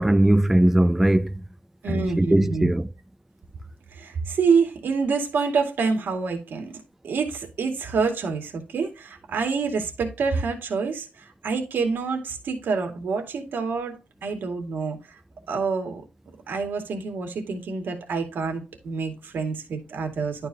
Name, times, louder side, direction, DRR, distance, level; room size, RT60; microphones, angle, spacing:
voice 1, 0.0-1.4 1.9-2.9, right 1 dB, 10° right, 0.4 m, -20 dB
voice 2, 1.8-2.7 3.9-6.7 7.0-15.2 15.5-16.0 16.5-20.5, right 5 dB, 85° right, 2.2 m, -27 dB
11.5 x 4.6 x 2.9 m
wide cardioid pair, 150°, 3 cm